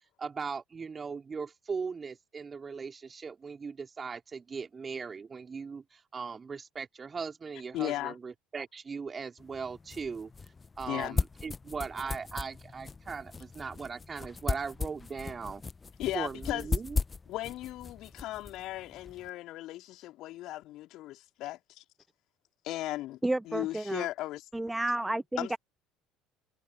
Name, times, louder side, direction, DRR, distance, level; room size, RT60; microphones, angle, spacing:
voice 1, 0.2-10.3 10.8-15.6 16.1-17.0, right 5 dB, 30° right, 3.8 m, -39 dB
voice 2, 7.7-8.1 10.9-11.2 16.0-16.7 17.3-21.8 22.6-23.2 23.5-24.4 25.4-25.6, left 16 dB, 55° left, 2.7 m, -36 dB
sound 1, 9.4-19.3, left 4 dB, 25° left, 1.3 m, -37 dB
voice 3, 23.2-24.1 24.5-25.6, right 1 dB, 10° right, 0.8 m, -31 dB
figure-of-eight pair, 60°, 0 cm